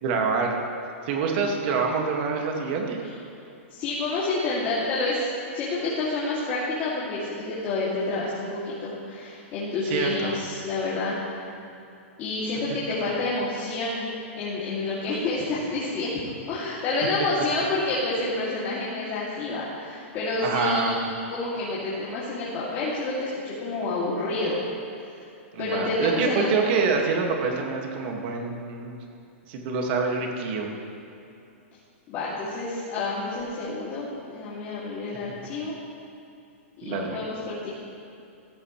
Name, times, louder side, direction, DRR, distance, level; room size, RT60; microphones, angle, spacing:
voice 1, 0.0-0.6 1.1-3.0 9.9-10.4 20.4-20.9 25.5-28.9 29.5-30.7 36.8-37.2, right 5 dB, 45° right, 1 dB, 2.1 m, -26 dB
voice 2, 3.7-11.2 12.2-16.1 16.5-24.6 25.6-26.7 32.1-35.7 36.8-37.7, left 2 dB, 30° left, -8 dB, 2.7 m, -29 dB
15.5 x 14.5 x 3.3 m, 2.7 s
hypercardioid pair, 150°, 7 cm